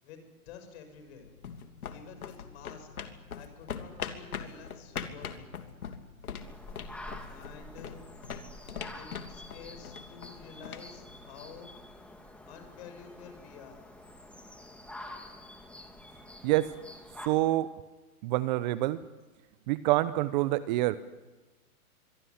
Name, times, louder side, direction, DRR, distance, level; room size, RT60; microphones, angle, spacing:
voice 1, 0.0-1.3 1.9-2.9 3.3-5.5 7.2-8.0 9.0-11.7 12.5-13.8, left 6 dB, 45° left, 7 dB, 6.9 m, -50 dB
sound 1, 1.0-11.8, left 7 dB, 80° left, 3.0 m, -42 dB
sound 2, 6.4-17.3, left 1 dB, 5° left, 2.5 m, -48 dB
voice 2, 17.3-17.7 18.2-19.0 19.7-21.0, right 17 dB, 30° right, 15 dB, 0.8 m, -26 dB
25.0 x 23.0 x 9.9 m, 1.2 s
hypercardioid pair, 135°, 44 cm